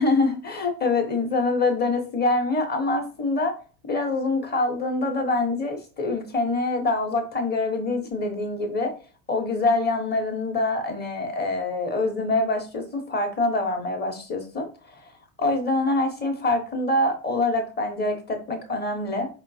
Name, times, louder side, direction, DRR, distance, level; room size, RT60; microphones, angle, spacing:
voice 1, 0.0-3.5 3.9-8.9 9.3-15.0 15.4-19.3, left 2 dB, 20° left, 5 dB, 1.2 m, -25 dB
4.9 x 3.6 x 2.7 m, 0.36 s
supercardioid pair, 130°, 44 cm